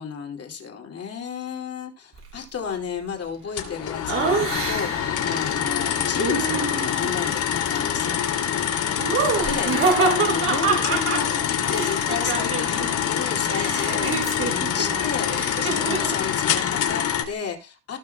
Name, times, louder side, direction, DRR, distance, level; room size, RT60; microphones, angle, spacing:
voice 1, 0.0-8.2 9.1-9.7 10.0-18.0, left 6 dB, 50° left, 2 dB, 2.6 m, -32 dB
sound 1, 3.6-17.2, left 9 dB, 85° left, 2.7 m, -25 dB
Laughter, 4.1-5.1 6.2-7.2 9.0-12.9 13.1-16.2, right 5 dB, 50° right, 4.4 m, -26 dB
17.5 x 6.0 x 2.3 m, 0.32 s
cardioid pair, 90°, 30 cm